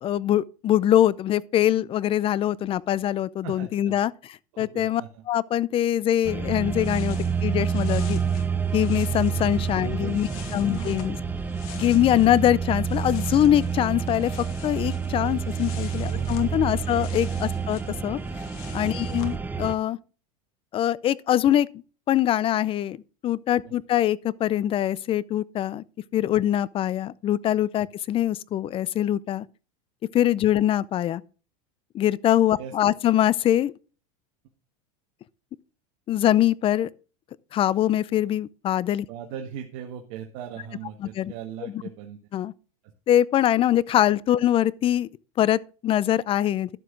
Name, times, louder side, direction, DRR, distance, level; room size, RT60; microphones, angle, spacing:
voice 1, 0.0-4.1 4.6-5.0 5.3-8.2 8.7-11.2 11.7-14.3 14.6-18.2 18.7-20.0 20.7-21.7 22.1-23.0 23.2-25.8 26.1-29.5 30.1-31.2 31.9-33.7 36.1-36.9 37.5-39.1 41.2-41.3 41.6-41.7 42.3-42.5 43.1-45.1 45.4-46.7, left 12 dB, 30° left, 0.4 m, -23 dB
voice 2, 3.4-4.0 4.5-5.2 9.8-10.9 11.4-11.5 16.1-16.3 23.6-23.7 32.6-32.8 39.1-42.2, right 9 dB, 60° right, 1.5 m, -39 dB
sound 1, 6.2-19.7, right 6 dB, 10° right, 0.7 m, -28 dB
sound 2, 6.6-12.4 12.7-19.4, left 9 dB, 70° left, 2.5 m, -47 dB
11.5 x 7.6 x 3.8 m
supercardioid pair, 125°, 19 cm